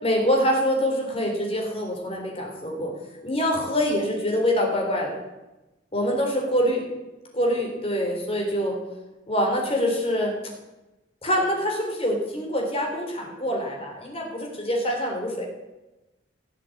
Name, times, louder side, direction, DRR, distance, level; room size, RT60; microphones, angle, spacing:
voice 1, 0.0-2.9 3.2-5.2 5.9-6.8 7.3-8.8 9.3-10.3 11.2-15.5, equal, 30° left, 0 dB, 3.7 m, -25 dB
16.5 x 7.6 x 8.5 m, 1.0 s
head